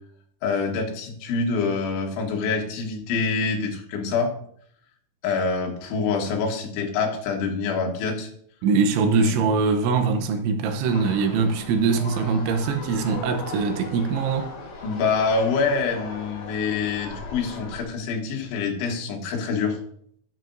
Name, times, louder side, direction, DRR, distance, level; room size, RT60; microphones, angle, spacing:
voice 1, 0.4-4.3 5.2-8.3 9.2-9.4 14.8-19.8, left 4 dB, 75° left, 3.7 m, -26 dB
voice 2, 8.6-14.5, right 5 dB, 80° right, 3.2 m, -22 dB
sound 1, 10.9-17.8, left 2 dB, 50° left, 3.2 m, -38 dB
11.0 x 10.5 x 2.6 m
omnidirectional pair, 5.5 m